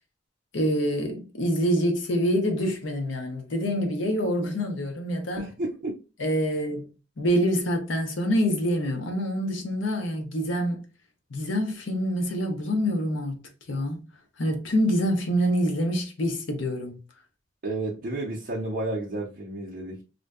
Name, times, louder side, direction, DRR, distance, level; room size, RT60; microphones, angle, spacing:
voice 1, 0.5-5.5 6.2-6.9 7.2-10.8 11.3-14.1 14.4-17.0, equal, 70° left, 0.6 m, -26 dB
voice 2, 5.4-6.0 17.6-20.0, right 2 dB, 45° right, 0.5 m, -31 dB
2.5 x 2.1 x 2.3 m
head